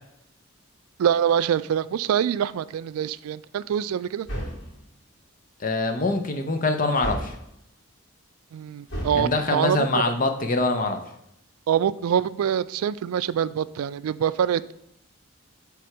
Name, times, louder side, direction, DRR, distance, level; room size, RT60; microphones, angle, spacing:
voice 1, 1.0-4.3 8.5-9.9 11.7-14.7, right 9 dB, 85° right, 16 dB, 0.3 m, -25 dB
sound 1, 4.2-4.8 7.0-7.5 8.9-9.3, equal, 70° left, 2.2 m, -32 dB
voice 2, 5.6-7.3 9.1-11.0, left 3 dB, 40° left, 6 dB, 0.7 m, -24 dB
7.7 x 3.5 x 4.6 m, 0.80 s
head